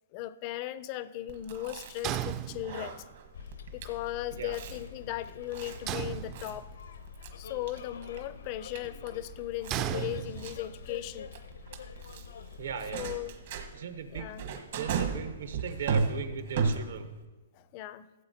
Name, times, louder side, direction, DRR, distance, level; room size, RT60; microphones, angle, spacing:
voice 1, 0.1-3.0 3.7-6.7 7.4-11.3 12.9-13.4 14.1-14.5 17.6-18.1, left 14 dB, 35° left, 16 dB, 0.4 m, -37 dB
Chewing mastication, 1.3-17.2, right 5 dB, 55° right, 1.2 m, -37 dB
sound 1, 2.0-3.1 5.9-6.9 9.7-10.8, right 12 dB, 25° right, 0.4 m, -35 dB
Bus, 3.3-13.2, left 7 dB, 80° left, 0.6 m, -46 dB
voice 2, 12.6-13.1 13.7-14.4 14.7-17.1, right 7 dB, 75° right, 9 dB, 1.0 m, -38 dB
16.0 x 7.6 x 2.8 m, 1.2 s
hypercardioid pair, 145°, 0 cm